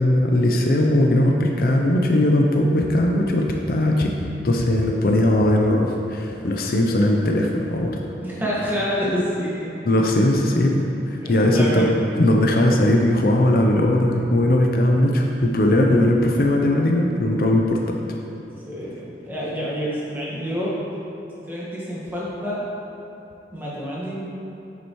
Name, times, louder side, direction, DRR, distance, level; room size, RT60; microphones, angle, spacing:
voice 1, 0.0-4.1 4.4-8.0 9.8-10.8 11.1-11.9 12.2-18.0, left 1 dB, 55° left, 1 dB, 0.6 m, -19 dB
voice 2, 8.2-9.8 11.2-11.9 18.7-20.8 21.5-22.6 23.5-24.2, equal, 10° right, -7 dB, 1.5 m, -27 dB
8.3 x 7.5 x 3.1 m, 2.9 s
head